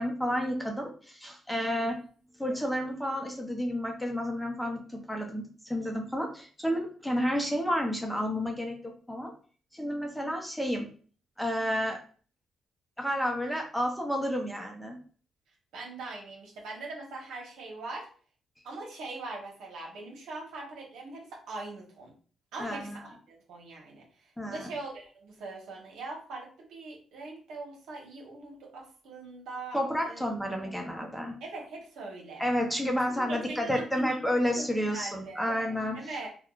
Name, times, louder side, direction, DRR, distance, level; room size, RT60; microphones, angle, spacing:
voice 1, 0.0-2.0 2.4-9.3 9.7-10.9 11.4-12.0 13.0-15.0 22.6-23.0 24.4-24.7 29.7-31.4 32.4-36.0, equal, 5° left, 2 dB, 0.7 m, -31 dB
voice 2, 1.6-2.0 2.5-2.6 15.7-18.1 18.6-22.1 22.5-30.2 30.6-30.7 31.4-32.5 33.1-35.5 35.9-36.3, right 3 dB, 85° right, -1 dB, 1.0 m, -42 dB
3.5 x 2.2 x 2.4 m, 0.41 s
cardioid pair, 95°, 0 cm